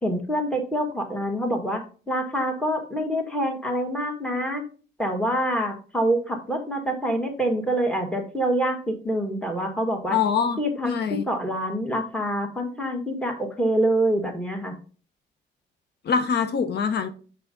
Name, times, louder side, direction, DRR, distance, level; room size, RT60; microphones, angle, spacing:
voice 1, 0.0-1.8 2.1-4.6 5.0-10.2 10.6-10.9 11.3-14.8, right 1 dB, 5° left, 1.7 m, -26 dB
voice 2, 10.1-10.6 10.8-11.2 16.0-17.1, left 6 dB, 55° left, 0.7 m, -23 dB
5.9 x 4.8 x 3.8 m
cardioid pair, 90°, 20 cm